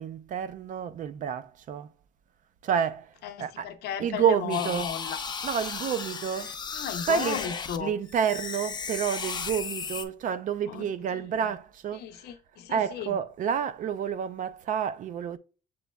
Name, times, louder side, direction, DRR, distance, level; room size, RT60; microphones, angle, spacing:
voice 1, 0.0-1.9 2.6-3.1 3.4-3.7 4.0-4.9 5.4-6.6 7.1-7.5 7.8-12.1 12.7-15.4, right 8 dB, 50° right, 0.5 m, -29 dB
voice 2, 3.2-5.2 6.7-7.9 10.7-10.9 11.3-11.4 12.0-13.2, left 9 dB, 75° left, 0.7 m, -35 dB
sound 1, 4.5-7.8 8.1-10.1, left 5 dB, 25° left, 0.6 m, -35 dB
6.9 x 3.1 x 2.2 m
cardioid pair, 110°, 17 cm